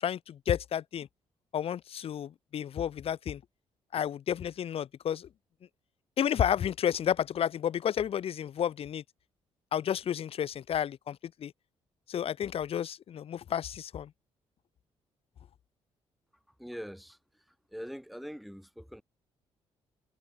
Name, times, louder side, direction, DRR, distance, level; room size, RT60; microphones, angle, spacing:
voice 1, 0.0-1.1 1.5-3.4 3.9-5.3 6.2-9.0 9.7-11.5 12.1-14.1, left 9 dB, 50° left, 0.4 m, -31 dB
voice 2, 16.6-17.2 17.7-19.0, equal, ahead, 2.8 m, -42 dB
supercardioid pair, 55°, 12 cm